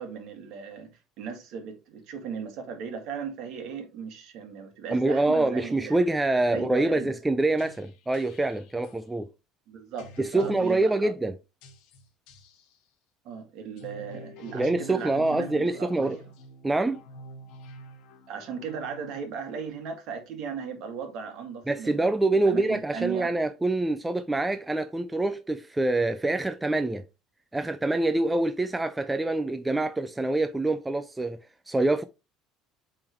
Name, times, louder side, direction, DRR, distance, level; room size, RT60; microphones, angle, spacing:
voice 1, 0.0-6.0 6.5-7.1 9.7-11.1 13.2-16.3 18.3-23.3, right 6 dB, 55° right, 2.0 m, -37 dB
voice 2, 4.9-9.3 10.2-11.3 14.5-16.2 16.6-17.0 21.7-27.1 27.5-31.4 31.7-32.0, right 2 dB, 5° right, 0.3 m, -25 dB
sound 1, 7.6-9.0 10.0-11.0 11.6-12.8 13.7-19.3, equal, 65° left, 1.4 m, -48 dB
8.8 x 3.8 x 3.1 m
cardioid pair, 165°, 0 cm